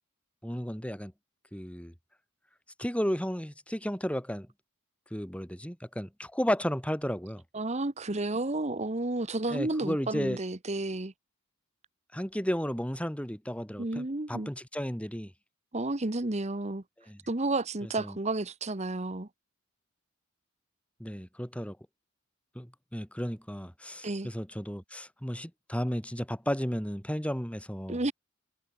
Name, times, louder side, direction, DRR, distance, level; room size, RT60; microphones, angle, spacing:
voice 1, 0.4-1.1 1.5-1.9 2.8-4.5 5.1-7.4 9.5-10.4 12.1-15.3 17.1-17.2 18.0-18.2 21.0-21.8 22.6-28.0, equal, 5° left, 5.6 m, -33 dB
voice 2, 7.5-11.1 13.8-14.5 15.7-16.8 17.3-19.3 24.0-24.3 27.9-28.1, right 2 dB, 30° right, 1.1 m, -31 dB
head